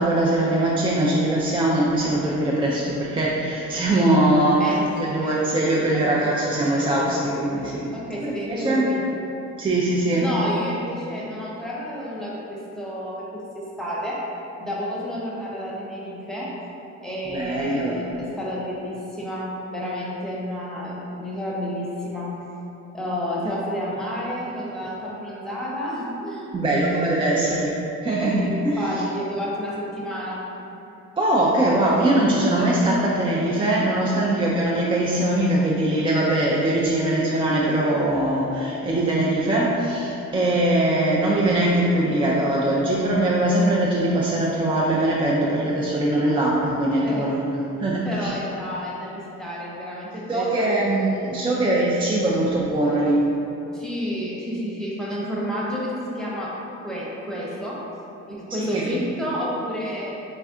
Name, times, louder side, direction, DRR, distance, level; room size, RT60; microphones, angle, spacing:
voice 1, 0.0-7.9 8.2-8.9 9.6-10.3 17.3-18.0 23.4-23.5 26.5-27.7 28.0-28.9 31.2-48.3 50.3-53.3 58.7-58.9, right 1 dB, 20° right, -5 dB, 0.3 m, -21 dB
voice 2, 4.6-6.4 7.9-9.2 10.1-13.2 13.8-14.2 14.6-16.5 17.0-22.3 22.9-27.5 28.3-30.4 32.7-33.0 47.0-47.3 48.0-50.7 53.7-56.5 56.8-57.8 58.3-60.1, equal, ahead, -7 dB, 0.8 m, -30 dB
3.2 x 2.4 x 3.6 m, 2.9 s
cardioid pair, 90°, 30 cm